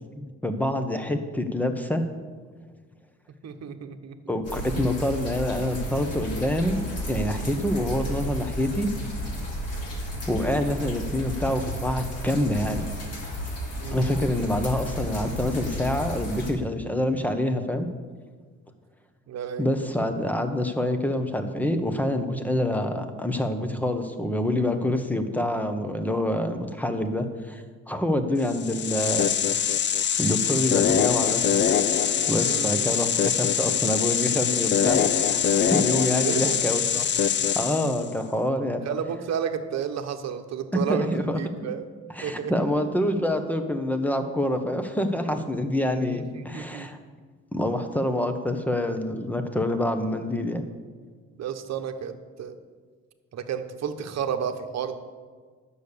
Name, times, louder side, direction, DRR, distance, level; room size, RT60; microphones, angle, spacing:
voice 1, 0.2-2.0 4.3-8.9 10.3-12.9 13.9-17.9 19.6-29.3 30.2-31.4 32.3-37.1 37.5-38.8 40.7-41.4 42.1-47.0 47.5-50.6, left 1 dB, 5° left, 7 dB, 1.2 m, -26 dB
voice 2, 3.4-4.2 13.8-14.2 19.3-19.7 32.4-32.9 36.1-36.6 38.8-41.9 42.2-42.5 46.1-46.9 51.4-52.5 53.3-54.9, right 8 dB, 60° right, 7 dB, 1.1 m, -31 dB
sound 1, 4.4-16.5, equal, 55° left, 3.2 m, -33 dB
sound 2, 28.5-38.1, left 8 dB, 40° left, 0.5 m, -23 dB
10.5 x 7.2 x 6.8 m, 1.5 s
cardioid pair, 90°, 30 cm